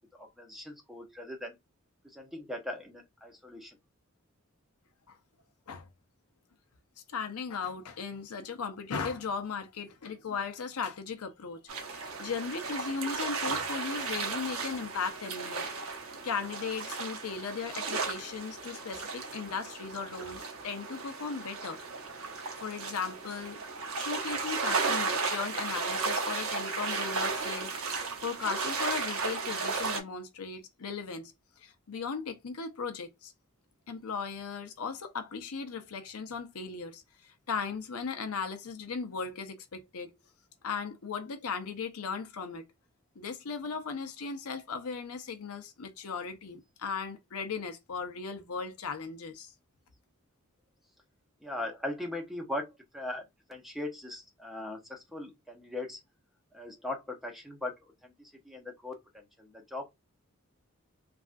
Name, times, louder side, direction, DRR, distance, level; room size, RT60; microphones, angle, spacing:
voice 1, 0.1-1.6 2.0-3.8 51.4-56.0 56.5-59.9, left 1 dB, ahead, 0.8 m, -40 dB
voice 2, 7.1-11.6 11.9-15.7 16.0-21.8 22.6-23.6 24.0-33.3 33.9-40.1 40.6-42.7 43.2-49.5, left 5 dB, 90° left, 0.6 m, -37 dB
sound 1, 11.7-30.0, right 4 dB, 70° right, 0.9 m, -35 dB
3.4 x 2.3 x 2.5 m
head